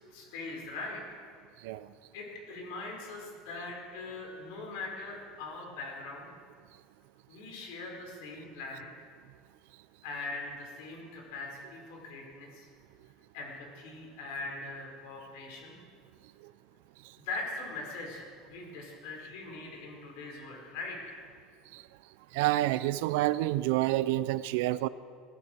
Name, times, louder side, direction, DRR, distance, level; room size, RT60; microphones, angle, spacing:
voice 1, 0.1-1.2 2.1-6.3 7.3-9.1 10.0-12.6 13.3-15.8 17.2-21.2, left 3 dB, 80° left, 0 dB, 4.7 m, -41 dB
voice 2, 22.3-24.9, right 16 dB, 80° right, 16 dB, 0.5 m, -28 dB
18.5 x 16.0 x 4.5 m, 2.1 s
cardioid pair, 170°, 0 cm